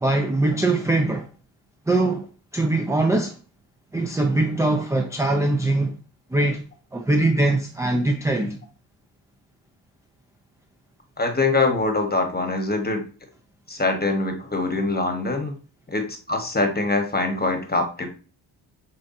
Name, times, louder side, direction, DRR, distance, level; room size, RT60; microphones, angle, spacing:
voice 1, 0.0-1.3 1.9-2.3 2.5-3.3 3.9-6.0 6.3-6.6 6.9-8.6, right 2 dB, 5° right, 0.4 m, -22 dB
voice 2, 11.2-13.0 13.7-15.5 15.9-18.1, left 3 dB, 20° left, 1.1 m, -23 dB
5.2 x 2.3 x 2.6 m
supercardioid pair, 55°, 49 cm